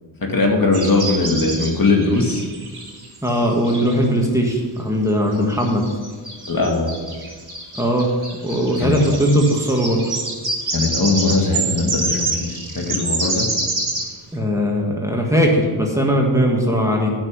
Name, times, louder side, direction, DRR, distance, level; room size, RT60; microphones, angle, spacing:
voice 1, 0.2-2.4 6.5-6.9 8.8-9.0 10.7-13.5, left 3 dB, 45° left, 0 dB, 2.2 m, -19 dB
sound 1, 0.7-4.1 4.5-4.6 5.3-14.1, right 2 dB, 50° right, 3.2 m, -27 dB
voice 2, 3.2-5.9 7.7-8.1 8.4-10.0 14.3-17.1, equal, 5° right, -1 dB, 1.8 m, -19 dB
8.9 x 6.2 x 7.6 m, 1.5 s
cardioid pair, 75°, 48 cm